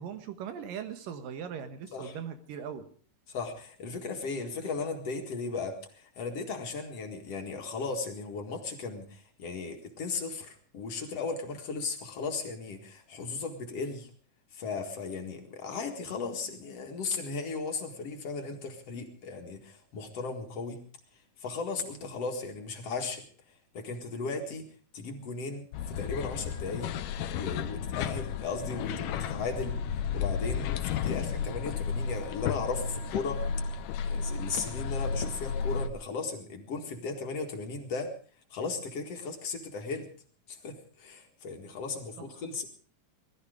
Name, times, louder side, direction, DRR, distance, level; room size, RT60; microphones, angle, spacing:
voice 1, 0.0-2.8 42.2-42.3, right 8 dB, 85° right, 9 dB, 3.1 m, -39 dB
voice 2, 3.3-14.1 14.5-20.8 21.4-23.3 23.7-24.7 24.9-26.9 27.3-29.8 30.1-33.5 34.1-38.2 38.5-40.1 40.5-42.7, left 4 dB, 50° left, 3 dB, 2.7 m, -36 dB
sound 1, 25.7-35.9, left 7 dB, 80° left, 2.5 m, -33 dB
20.5 x 13.5 x 5.0 m, 0.43 s
omnidirectional pair, 3.8 m